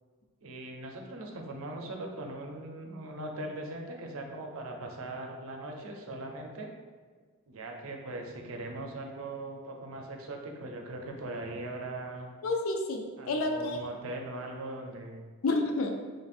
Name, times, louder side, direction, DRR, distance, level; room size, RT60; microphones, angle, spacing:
voice 1, 0.4-6.7 7.5-12.3 13.2-15.2, right 2 dB, 70° right, 2 dB, 0.5 m, -40 dB
voice 2, 12.4-13.8 15.4-16.0, left 2 dB, 70° left, 3 dB, 0.4 m, -29 dB
3.2 x 2.5 x 4.2 m, 1.5 s
head